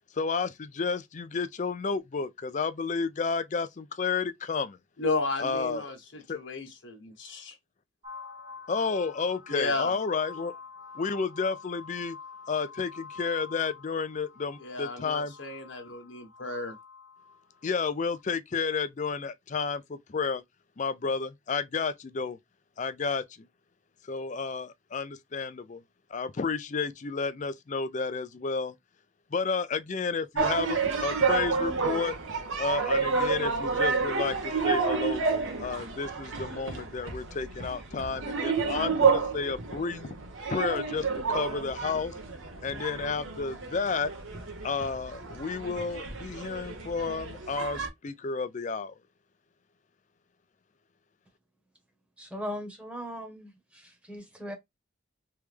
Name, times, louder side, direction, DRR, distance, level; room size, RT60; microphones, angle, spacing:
voice 1, 0.1-4.8 5.4-5.8 6.3-6.4 8.7-10.6 10.9-12.2 12.5-15.3 17.6-20.4 20.8-22.4 22.8-23.5 24.0-25.8 26.1-28.7 29.3-32.2 32.6-35.2 35.6-40.1 40.5-42.1 42.6-44.1 44.6-48.9, left 4 dB, 35° left, 0.4 m, -31 dB
voice 2, 5.0-7.5 9.5-10.0 14.6-16.7, left 3 dB, 60° left, 1.2 m, -33 dB
sound 1, 8.0-18.2, left 5 dB, 25° right, 0.7 m, -47 dB
sound 2, 30.4-47.9, right 5 dB, 75° right, 1.1 m, -30 dB
voice 3, 52.2-54.5, equal, 5° right, 1.1 m, -39 dB
3.4 x 3.0 x 3.3 m
head